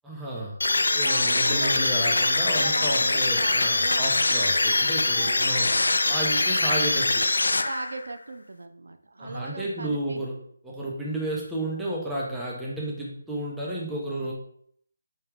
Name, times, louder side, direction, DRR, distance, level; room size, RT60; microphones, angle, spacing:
voice 1, 0.0-0.6 0.9-5.7 6.0-7.2 9.2-10.4 10.6-14.3, right 1 dB, 5° right, -5 dB, 0.7 m, -32 dB
sound 1, 0.6-8.1, left 2 dB, 80° left, 0.3 m, -23 dB
voice 2, 1.0-2.3 2.6-4.4 5.1-5.5 7.6-10.3 14.1-14.3, right 3 dB, 70° right, 8 dB, 0.3 m, -38 dB
4.6 x 2.3 x 3.4 m, 0.64 s
figure-of-eight pair, 165°, 0 cm